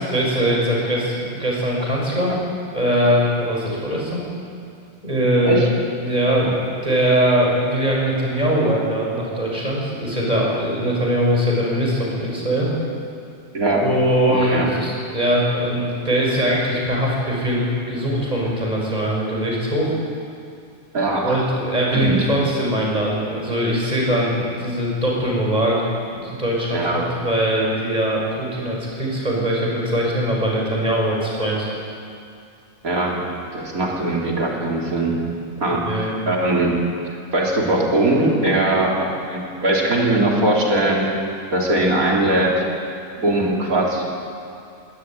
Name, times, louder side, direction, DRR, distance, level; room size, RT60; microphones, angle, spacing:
voice 1, 0.0-2.4 2.7-4.2 5.0-5.6 6.0-6.5 6.8-12.7 13.7-20.0 21.2-25.9 26.2-31.7 35.6-36.2, equal, 30° right, -3 dB, 6.4 m, -21 dB
voice 2, 14.3-14.7 20.9-21.4 21.9-22.3 26.7-27.0 32.8-35.2 35.6-36.7 37.3-41.1 41.5-42.5 43.2-44.0, right 1 dB, 85° right, -2 dB, 4.0 m, -20 dB
21.5 x 19.0 x 9.3 m, 2.5 s
omnidirectional pair, 1.5 m